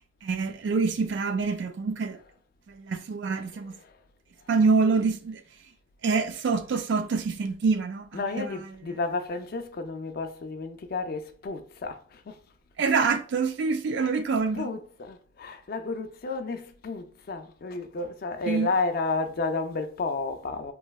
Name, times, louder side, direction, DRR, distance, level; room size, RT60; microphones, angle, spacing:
voice 1, 0.2-2.2 2.7-3.7 4.5-5.4 6.0-8.5 12.8-14.7 18.5-18.7, right 4 dB, 60° right, 0.3 m, -26 dB
voice 2, 3.3-3.9 8.1-12.4 13.0-13.1 14.0-14.1 14.5-20.7, left 3 dB, 50° left, 0.4 m, -32 dB
3.1 x 2.6 x 2.3 m
head